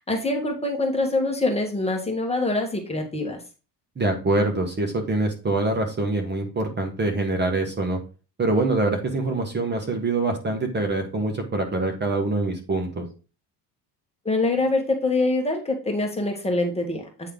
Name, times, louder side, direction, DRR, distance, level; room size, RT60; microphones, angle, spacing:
voice 1, 0.1-3.4 14.2-17.3, left 2 dB, 15° left, 2 dB, 1.4 m, -24 dB
voice 2, 4.0-8.0 8.4-13.1, right 2 dB, 25° right, 3 dB, 1.2 m, -24 dB
8.6 x 3.3 x 3.7 m, 0.34 s
cardioid pair, 125°, 41 cm